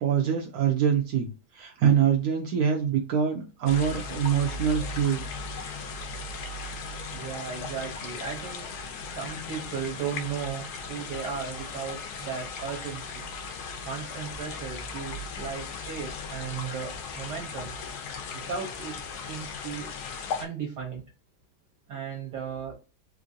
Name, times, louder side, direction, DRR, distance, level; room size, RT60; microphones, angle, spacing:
voice 1, 0.0-5.2, right 8 dB, 85° right, 2 dB, 0.8 m, -24 dB
sound 1, 3.7-20.5, left 4 dB, 75° left, 0.9 m, -37 dB
voice 2, 7.1-8.7 9.1-13.3 13.8-17.7 18.3-19.0 19.3-19.9 20.4-21.0 21.9-22.7, right 7 dB, 65° right, -1 dB, 1.2 m, -36 dB
3.6 x 2.6 x 2.5 m, 0.33 s
omnidirectional pair, 2.3 m